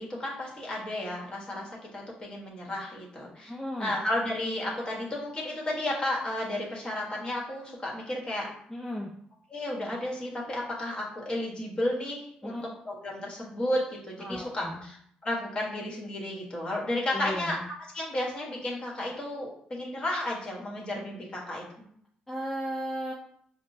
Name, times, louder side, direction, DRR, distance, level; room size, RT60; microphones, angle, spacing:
voice 1, 0.0-3.5 3.8-8.5 9.5-12.6 12.8-15.0 15.2-17.6 17.9-21.7, left 1 dB, 30° left, -3 dB, 1.5 m, -33 dB
voice 2, 3.5-3.9 8.7-9.1 12.4-12.6 14.2-14.8 17.1-17.7 22.3-23.1, equal, 5° left, -2 dB, 0.5 m, -35 dB
5.0 x 2.0 x 2.7 m, 0.66 s
supercardioid pair, 65°, 3 cm